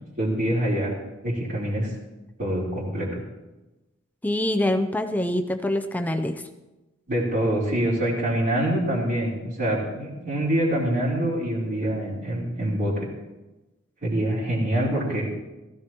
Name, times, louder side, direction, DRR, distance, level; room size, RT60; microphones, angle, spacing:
voice 1, 0.2-0.9 1.2-1.9 2.4-3.2 7.1-13.1 14.0-15.3, right 1 dB, 50° right, -10 dB, 3.4 m, -25 dB
voice 2, 4.2-6.4, left 1 dB, 10° left, 6 dB, 0.5 m, -25 dB
16.0 x 15.0 x 3.0 m, 1.1 s
head